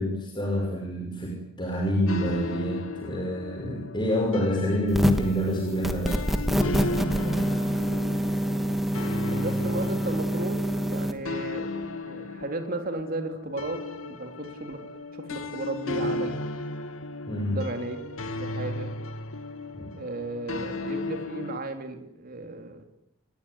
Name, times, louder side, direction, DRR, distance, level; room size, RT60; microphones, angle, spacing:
voice 1, 0.0-7.6 17.3-17.6 19.7-19.9, equal, 25° left, 0 dB, 5.8 m, -28 dB
sound 1, 2.1-21.6, left 2 dB, 85° left, 2.5 m, -35 dB
sound 2, 4.9-5.4 5.8-11.1, equal, ahead, 2.5 m, -26 dB
voice 2, 9.3-11.7 12.0-16.4 17.4-18.0 18.3-18.9 20.0-22.9, right 2 dB, 45° right, 5 dB, 3.6 m, -35 dB
28.0 x 21.5 x 9.7 m, 0.84 s
head